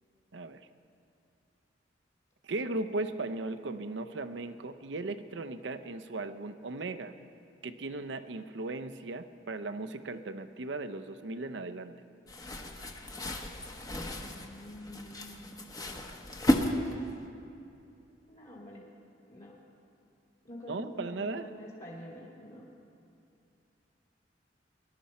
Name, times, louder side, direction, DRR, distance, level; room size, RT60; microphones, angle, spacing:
voice 1, 2.4-7.1 7.6-11.9 20.7-21.5, right 2 dB, 80° right, 9 dB, 0.7 m, -37 dB
sound 1, 12.3-17.2, equal, 20° left, 0.9 m, -33 dB
voice 2, 14.1-16.0 16.3-17.3 18.3-18.8 19.3-19.6 20.4-22.7, left 1 dB, 40° left, -4 dB, 2.3 m, -48 dB
21.0 x 11.5 x 4.3 m, 2.6 s
head